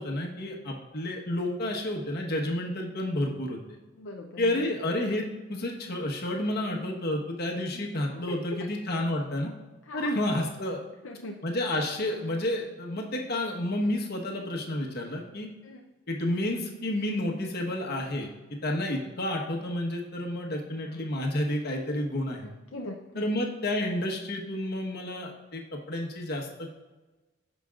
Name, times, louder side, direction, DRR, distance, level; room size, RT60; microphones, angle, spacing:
voice 1, 0.0-3.6 4.4-9.5 9.9-10.8 11.4-15.5 16.1-18.3 18.6-22.5 23.2-26.7, left 1 dB, 55° left, 1 dB, 1.3 m, -30 dB
voice 2, 4.0-4.7 7.7-8.7 9.9-10.3 11.0-11.4 15.6-15.8 20.9-21.0 22.4-23.3, left 1 dB, 75° left, 1 dB, 0.6 m, -41 dB
15.0 x 5.3 x 2.5 m, 1.2 s
head